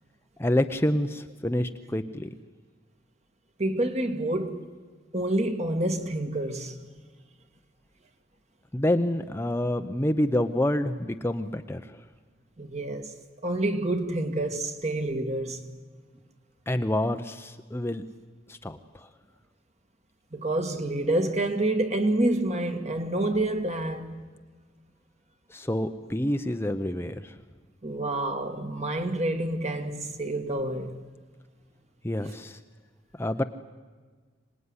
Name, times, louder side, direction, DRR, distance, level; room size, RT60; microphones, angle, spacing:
voice 1, 0.4-2.3 8.7-12.0 16.7-18.0 18.5-18.8 25.5-27.4 32.0-32.6 33.2-33.4, left 1 dB, 15° left, 0.7 m, -27 dB
voice 2, 3.6-4.7 5.1-6.8 12.6-13.1 13.4-15.7 20.3-24.2 27.8-31.0, right 1 dB, 35° right, 1.9 m, -28 dB
25.0 x 19.5 x 9.7 m
head